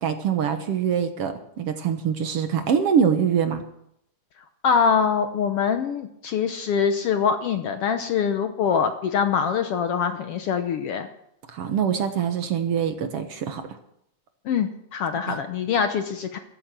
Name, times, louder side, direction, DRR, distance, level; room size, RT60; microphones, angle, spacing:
voice 1, 0.0-3.6 11.5-13.6 15.3-15.4, right 7 dB, 60° right, 7 dB, 1.9 m, -24 dB
voice 2, 4.6-11.1 14.5-16.4, left 6 dB, 65° left, 8 dB, 1.5 m, -24 dB
13.5 x 13.0 x 6.1 m, 0.76 s
omnidirectional pair, 3.3 m